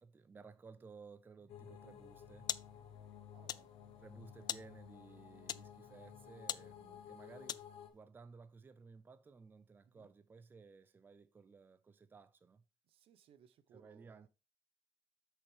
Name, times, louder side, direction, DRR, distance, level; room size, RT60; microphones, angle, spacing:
voice 1, 0.0-2.5 4.0-7.6 7.9-12.6 13.7-14.3, right 4 dB, 20° right, 0.5 m, -57 dB
sound 1, 1.4-7.5, left 2 dB, 15° left, 1.0 m, -70 dB
sound 2, 1.5-7.9, left 9 dB, 75° left, 1.0 m, -55 dB
sound 3, 1.9-8.0, left 10 dB, 45° left, 0.3 m, -47 dB
voice 2, 3.3-3.7 9.9-10.1 12.9-14.3, right 9 dB, 75° right, 0.8 m, -65 dB
7.8 x 6.4 x 3.4 m
cardioid pair, 150°, 10 cm